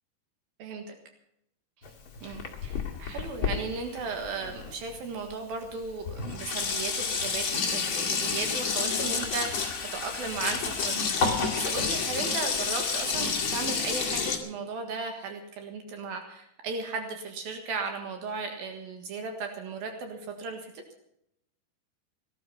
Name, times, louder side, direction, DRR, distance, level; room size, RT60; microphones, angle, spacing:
Sink (filling or washing), 1.8-5.0 5.7-5.8 6.1-14.4, left 5 dB, 40° left, 2.5 m, -30 dB
voice 1, 2.2-20.8, right 4 dB, 70° right, 5 dB, 3.4 m, -36 dB
18.0 x 12.0 x 5.6 m, 0.77 s
omnidirectional pair, 4.4 m